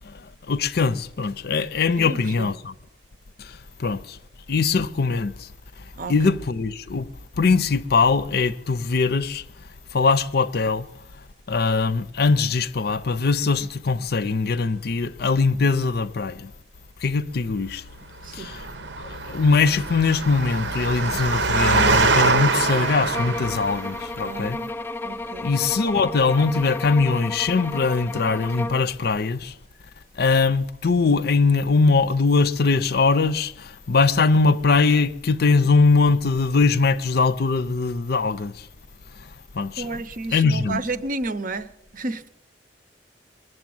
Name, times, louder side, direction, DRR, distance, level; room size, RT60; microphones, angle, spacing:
voice 1, 0.5-2.7 3.8-4.0 4.5-5.3 6.1-7.1 7.4-9.4 9.9-10.8 11.5-16.4 17.0-17.8 18.4-18.6 19.3-24.6 25.4-29.5 30.2-33.5 33.9-38.5 39.6-39.9 40.3-40.8, left 4 dB, 60° left, 0.6 m, -21 dB
voice 2, 2.0-2.5 6.0-6.2 18.2-18.5 24.2-25.5 39.8-42.3, right 3 dB, 50° right, 0.7 m, -32 dB
Engine, 18.3-24.0, right 3 dB, 80° right, 1.0 m, -23 dB
sound 1, 23.1-28.9, left 2 dB, 10° left, 0.4 m, -33 dB
21.5 x 7.8 x 7.7 m
head